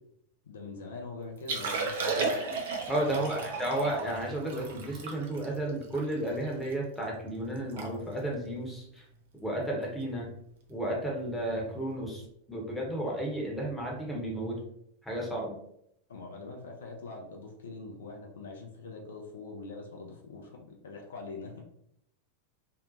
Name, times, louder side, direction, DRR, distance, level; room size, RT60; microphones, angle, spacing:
voice 1, 0.5-2.4 3.0-3.3 16.1-21.7, left 3 dB, 65° left, 1 dB, 0.4 m, -43 dB
Liquid, 1.4-6.7 7.2-7.3 7.6-8.4 9.0-9.2 10.7-10.8, right 4 dB, 55° right, 0.5 m, -34 dB
voice 2, 2.9-9.0 9.4-10.3 10.7-12.2 12.5-14.6 15.0-15.6, right 1 dB, 5° left, -3 dB, 0.8 m, -33 dB
2.6 x 2.1 x 2.5 m, 0.73 s
figure-of-eight pair, 90°, 0 cm